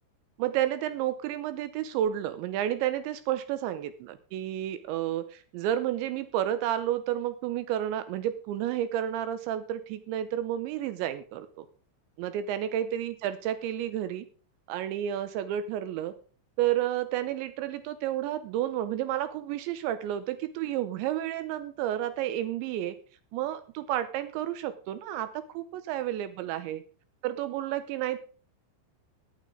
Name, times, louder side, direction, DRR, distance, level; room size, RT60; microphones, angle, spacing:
voice 1, 0.4-11.7 12.2-14.3 14.7-16.1 16.6-23.0 23.3-26.8 27.2-28.2, right 12 dB, 80° right, 12 dB, 2.9 m, -31 dB
17.0 x 9.2 x 3.7 m, 0.39 s
omnidirectional pair, 5.5 m